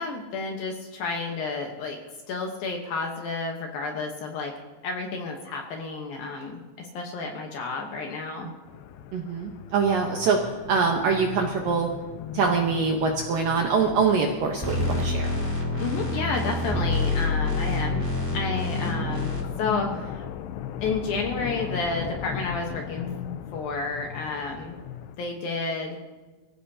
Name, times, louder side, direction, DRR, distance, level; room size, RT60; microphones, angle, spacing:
voice 1, 0.0-2.0 2.3-4.5 4.8-8.5 15.8-18.0 18.3-20.3 20.8-23.1 23.5-24.8 25.2-26.0, left 4 dB, 65° left, 2 dB, 2.5 m, -31 dB
sound 1, 8.7-25.2, left 9 dB, 85° left, 2.5 m, -37 dB
voice 2, 9.1-11.9 12.3-15.3, right 5 dB, 70° right, 1 dB, 2.1 m, -24 dB
sound 2, 14.6-19.4, left 2 dB, 5° left, 3.4 m, -27 dB
23.0 x 16.0 x 2.8 m, 1.3 s
omnidirectional pair, 5.4 m